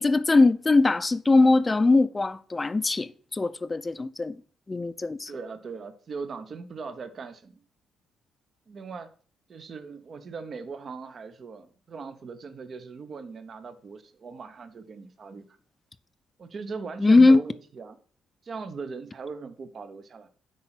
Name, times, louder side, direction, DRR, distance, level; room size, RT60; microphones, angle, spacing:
voice 1, 0.0-4.4 4.7-5.3 17.0-17.4, left 3 dB, 25° left, 0.6 m, -21 dB
voice 2, 5.3-7.6 8.7-9.1 9.5-15.5 16.4-18.0 18.4-20.3, right 4 dB, 50° right, 0.9 m, -39 dB
10.0 x 3.9 x 5.9 m
cardioid pair, 90°, 0 cm